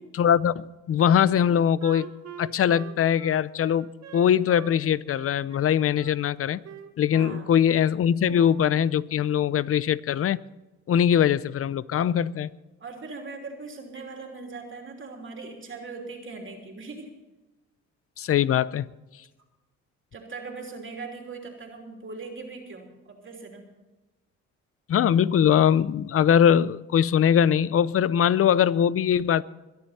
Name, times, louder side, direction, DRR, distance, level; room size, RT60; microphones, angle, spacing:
voice 1, 0.2-2.1 2.4-3.9 4.1-6.6 7.0-10.4 10.9-12.5 18.2-18.9 24.9-29.4, left 9 dB, 50° left, 19 dB, 0.6 m, -22 dB
Wind instrument woodwind instrument, 1.3-4.8 5.1-6.2 6.6-7.9 8.2-8.7, right 8 dB, 60° right, 1.5 m, -44 dB
voice 2, 12.8-17.1 20.1-23.6, right 4 dB, 40° right, 1 dB, 3.1 m, -40 dB
22.5 x 10.5 x 4.2 m, 1.1 s
cardioid pair, 90°, 30 cm